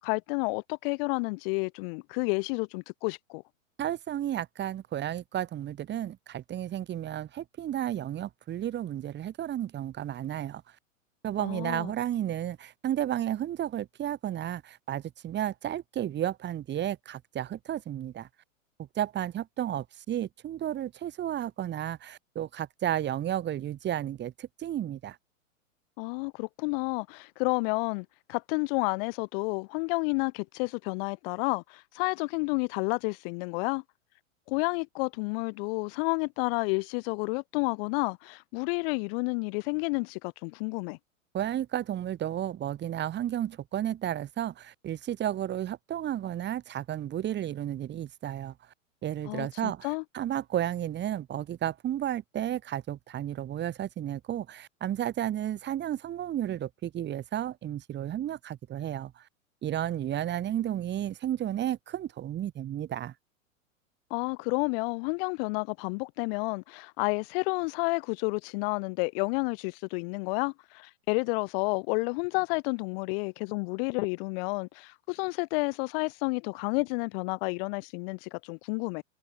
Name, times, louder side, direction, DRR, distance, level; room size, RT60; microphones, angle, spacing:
voice 1, 0.0-3.4 11.4-11.9 26.0-33.8 34.5-41.0 49.3-50.0 64.1-79.0, left 32 dB, 45° left, 6.6 m, -30 dB
voice 2, 3.8-10.6 11.2-18.3 19.0-25.2 41.3-48.5 49.0-59.2 59.6-63.1, right 11 dB, 25° right, 6.1 m, -32 dB
figure-of-eight pair, 105°, 40 cm